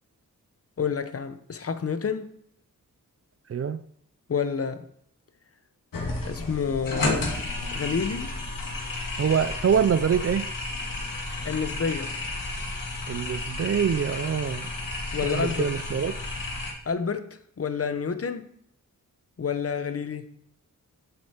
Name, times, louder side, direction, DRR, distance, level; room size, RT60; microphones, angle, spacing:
voice 1, 0.8-2.4 4.3-4.8 6.3-7.3 7.7-8.3 11.4-12.1 15.1-15.7 16.9-18.4 19.4-20.3, left 6 dB, 45° left, 10 dB, 0.8 m, -29 dB
voice 2, 3.5-3.8 9.2-10.5 13.1-14.7 15.2-16.2, right 7 dB, 45° right, 14 dB, 0.4 m, -25 dB
sound 1, 5.9-16.7, left 2 dB, 70° left, 2.2 m, -32 dB
8.0 x 7.9 x 4.3 m, 0.69 s
wide cardioid pair, 115°, 34 cm